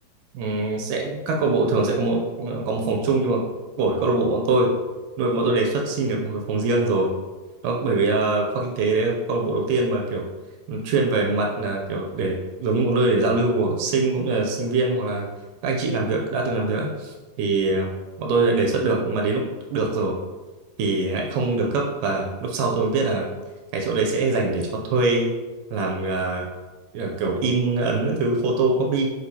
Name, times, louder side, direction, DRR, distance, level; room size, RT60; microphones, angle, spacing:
voice 1, 0.3-3.4 3.8-4.7 5.2-7.1 7.6-10.2 10.7-15.3 15.6-17.9 18.2-20.2 20.8-23.3 23.7-25.3 25.7-26.5 26.9-29.1, right 3 dB, 80° right, 0 dB, 2.0 m, -23 dB
6.1 x 2.6 x 2.7 m, 1.2 s
omnidirectional pair, 3.8 m